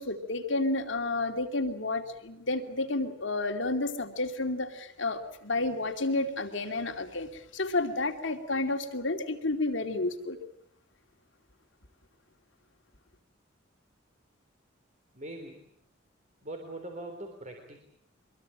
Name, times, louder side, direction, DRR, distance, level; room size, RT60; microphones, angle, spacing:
voice 1, 0.0-10.4, left 2 dB, 70° left, 5 dB, 2.7 m, -31 dB
voice 2, 15.1-15.6 16.4-17.8, right 1 dB, 40° right, 3 dB, 3.8 m, -41 dB
25.0 x 22.0 x 8.7 m, 0.73 s
head